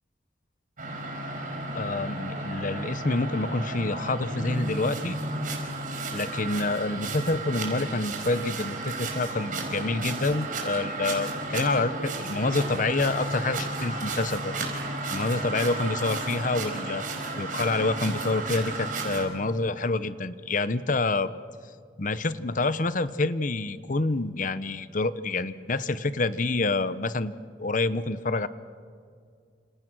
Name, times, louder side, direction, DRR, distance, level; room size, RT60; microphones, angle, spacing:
sound 1, 0.8-19.3, right 2 dB, 50° right, 4.9 m, -33 dB
voice 1, 1.7-5.2 6.1-14.5 15.1-17.0 17.4-21.3 22.0-27.3 27.6-28.5, left 3 dB, 50° left, 14 dB, 0.9 m, -27 dB
29.5 x 27.5 x 6.2 m, 2.1 s
head